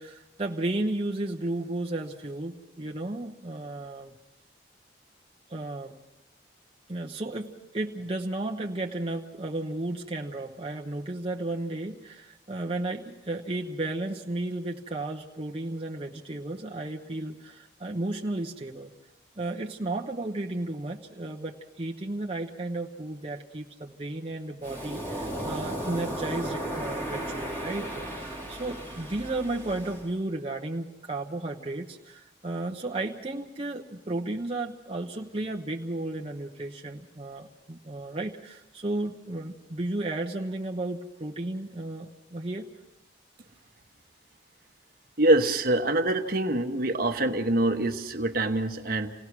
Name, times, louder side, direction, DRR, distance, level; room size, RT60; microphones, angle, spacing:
voice 1, 0.0-4.1 5.5-5.9 6.9-18.9 19.4-42.7, right 2 dB, 30° right, 0 dB, 0.9 m, -33 dB
Waves surf, 24.6-30.1, right 1 dB, 10° left, 3.1 m, -35 dB
voice 2, 45.2-49.1, right 1 dB, 55° right, 6 dB, 1.2 m, -25 dB
28.5 x 17.5 x 6.0 m, 0.99 s
head